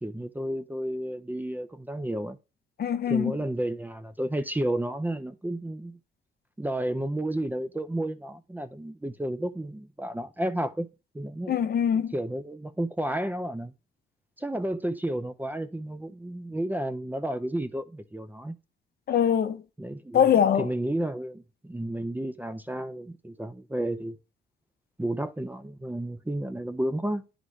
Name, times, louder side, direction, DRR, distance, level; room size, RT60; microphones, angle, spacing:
voice 1, 0.0-2.4 3.1-6.0 6.6-10.9 11.1-11.7 12.1-13.7 14.4-18.5 19.8-20.2 20.6-24.2 25.0-27.2, right 1 dB, 10° right, 0.5 m, -32 dB
voice 2, 2.8-3.4 11.5-12.1 19.1-19.6 20.1-20.7, left 8 dB, 50° left, 0.6 m, -23 dB
9.6 x 4.0 x 3.1 m
cardioid pair, 90°, 20 cm